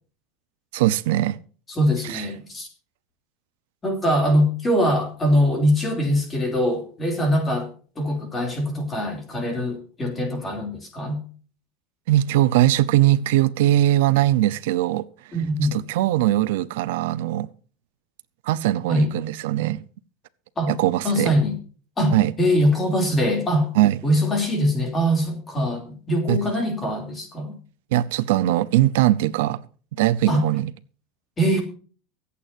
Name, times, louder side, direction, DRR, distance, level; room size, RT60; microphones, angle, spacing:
voice 1, 0.7-1.4 2.0-2.3 12.1-15.3 15.7-17.5 18.4-19.8 20.7-21.3 22.1-22.3 23.7-24.0 26.3-26.4 27.9-29.6 30.0-30.7, right 14 dB, 80° right, 0.7 m, -20 dB
voice 2, 1.7-2.7 3.8-7.7 8.0-11.2 15.3-15.7 18.9-19.1 20.6-20.7 21.0-21.6 22.0-23.7 24.0-27.6 30.3-30.4 31.4-31.6, equal, 15° left, 2.9 m, -22 dB
23.5 x 8.5 x 2.7 m
cardioid pair, 180°, 0 cm